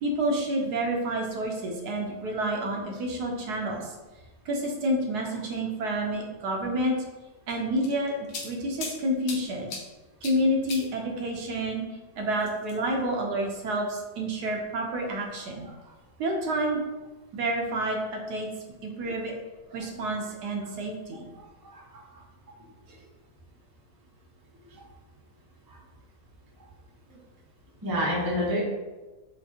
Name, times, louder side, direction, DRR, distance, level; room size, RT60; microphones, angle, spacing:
voice 1, 0.0-4.0 4.4-6.9 7.5-9.7 10.2-11.8 12.2-15.6 16.2-16.8 17.3-18.5 18.8-19.3 19.7-21.3, right 1 dB, 75° right, 0 dB, 1.2 m, -29 dB
sound 1, 7.5-9.0 9.3-9.8 10.2-10.4 10.7-10.8 12.4-12.9, left 3 dB, 75° left, 1.2 m, -37 dB
voice 2, 21.3-22.2 22.5-22.6 22.9-23.0 24.7-24.9 25.7-25.8 27.1-27.2 27.8-28.6, equal, 30° right, -5 dB, 0.4 m, -31 dB
5.3 x 2.4 x 2.8 m, 1.2 s
omnidirectional pair, 1.8 m